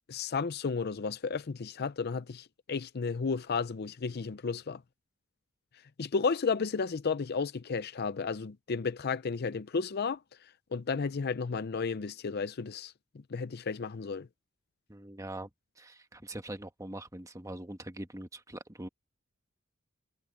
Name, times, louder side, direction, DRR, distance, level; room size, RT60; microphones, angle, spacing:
voice 1, 0.1-4.8 6.0-10.2 10.7-12.9 13.3-14.3, left 5 dB, 50° left, 0.5 m, -33 dB
voice 2, 14.9-15.5 15.8-18.9, right 1 dB, 15° right, 1.4 m, -42 dB
head